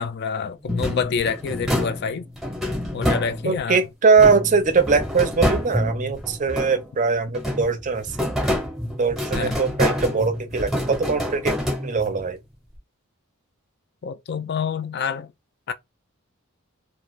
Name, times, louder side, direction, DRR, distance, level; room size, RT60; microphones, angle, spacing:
voice 1, 0.0-2.3 2.9-3.8 9.3-9.6 14.0-15.3 15.7-15.8, left 6 dB, 50° left, 0.3 m, -27 dB
sound 1, 0.7-3.7 4.2-7.0 7.3-12.3, equal, ahead, 0.7 m, -27 dB
voice 2, 3.4-8.3 9.0-11.5 11.8-12.4, right 4 dB, 35° right, 0.5 m, -21 dB
2.3 x 2.3 x 3.0 m
head